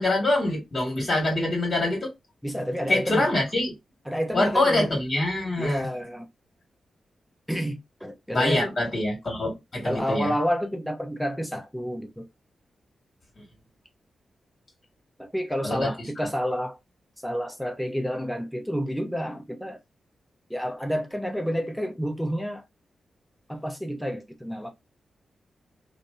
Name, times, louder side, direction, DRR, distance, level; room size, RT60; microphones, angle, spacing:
voice 1, 0.0-2.1 2.9-3.8 4.3-5.9 8.3-10.3 13.4-13.5 15.6-15.9 16.2-16.3, left 2 dB, 40° left, 1.4 m, -25 dB
voice 2, 2.4-3.3 4.1-4.9 5.6-6.3 7.5-8.7 9.8-12.2 15.2-16.8 17.2-19.8 20.5-22.6 23.5-24.7, equal, ahead, 0.7 m, -29 dB
2.6 x 2.1 x 2.3 m
supercardioid pair, 40°, 0 cm